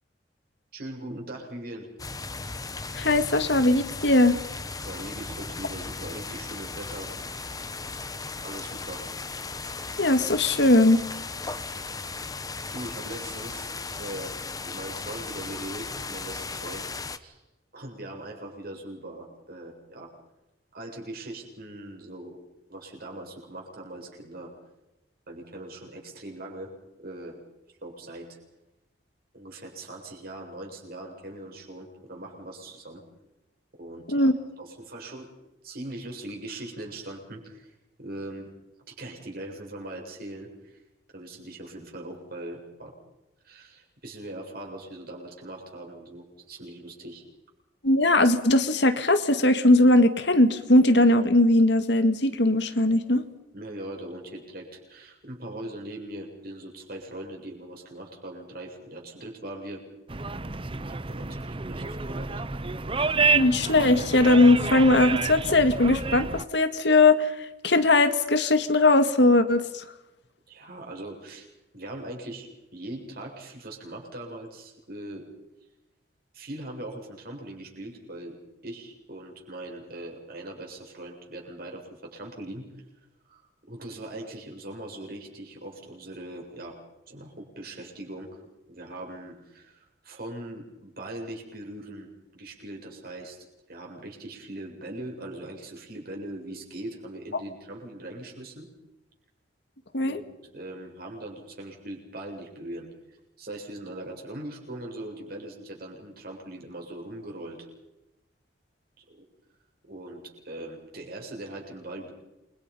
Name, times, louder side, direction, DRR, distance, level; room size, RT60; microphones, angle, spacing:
voice 1, 0.7-1.9 4.8-7.3 8.4-9.1 11.7-11.9 12.7-14.3 14.6-17.4 17.7-20.1 20.7-22.4 22.7-24.5 25.3-26.7 27.0-27.4 27.8-28.4 29.3-33.0 33.7-34.3 34.6-35.3 35.6-38.5 38.9-40.8 41.1-42.9 43.4-47.2 53.5-59.8 60.8-62.6 70.5-71.5 71.7-75.2 76.3-78.4 78.6-82.7 83.3-83.4 83.7-86.8 87.1-88.4 88.7-93.4 93.7-98.7 100.0-102.9 103.4-107.7 109.0-109.2 109.8-112.1, right 1 dB, 50° right, 0 dB, 7.7 m, -40 dB
sound 1, 2.0-17.2, left 4 dB, 20° left, 1.2 m, -36 dB
voice 2, 2.9-4.4 10.0-11.0 34.1-34.3 47.8-53.2 63.3-69.8 99.9-100.2, left 2 dB, 65° left, 8 dB, 2.0 m, -20 dB
sound 2, 60.1-66.4, right 4 dB, 30° right, 0.8 m, -29 dB
29.0 x 23.5 x 5.6 m, 0.95 s
head